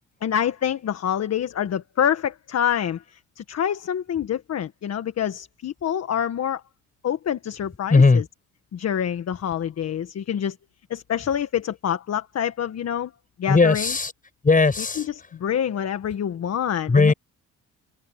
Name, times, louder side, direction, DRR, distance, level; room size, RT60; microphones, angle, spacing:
voice 1, 0.2-6.6 7.0-8.2 8.7-10.6 10.9-13.1 13.4-13.9 15.0-17.1, left 9 dB, 60° left, 1.6 m, -26 dB
voice 2, 7.9-8.2 13.5-14.1 14.4-15.1 16.9-17.1, left 4 dB, 25° left, 7.9 m, -17 dB
cardioid pair, 90°, 30 cm